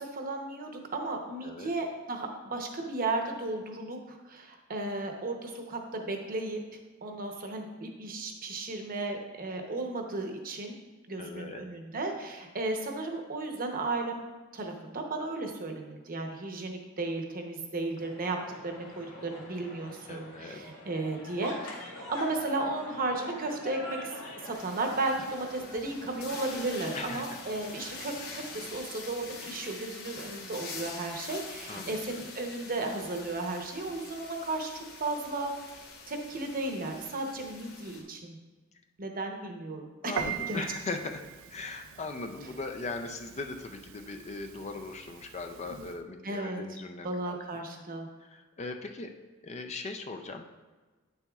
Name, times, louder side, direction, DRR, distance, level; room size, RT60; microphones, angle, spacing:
voice 1, 0.0-6.6 7.0-10.7 11.1-14.2 14.5-21.8 22.1-24.1 24.4-35.5 36.1-38.4 39.0-40.6 46.2-46.6 47.0-48.1, right 2 dB, 40° right, 3 dB, 0.8 m, -34 dB
voice 2, 11.2-11.6 20.1-20.6 26.9-27.4 28.2-28.4 31.7-32.3 40.0-41.2 41.5-47.6 48.2-49.1 49.4-50.4, left 3 dB, 30° left, 5 dB, 0.4 m, -39 dB
sound 1, 18.0-28.7, left 2 dB, 90° left, 1.7 m, -45 dB
sound 2, 24.5-38.0, left 4 dB, 50° left, 1.2 m, -45 dB
Piano, 40.2-46.0, right 7 dB, 65° right, 0.4 m, -42 dB
9.2 x 6.9 x 2.3 m, 1.3 s
head